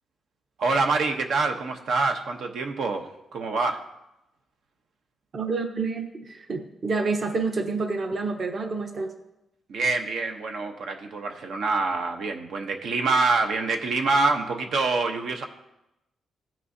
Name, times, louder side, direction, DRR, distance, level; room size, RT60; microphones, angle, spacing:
voice 1, 0.6-3.8 9.7-15.5, right 3 dB, 70° right, 4 dB, 0.9 m, -26 dB
voice 2, 5.3-9.1, right 4 dB, 40° right, 5 dB, 0.9 m, -28 dB
16.0 x 6.1 x 2.7 m, 0.90 s
cardioid pair, 140°, 0 cm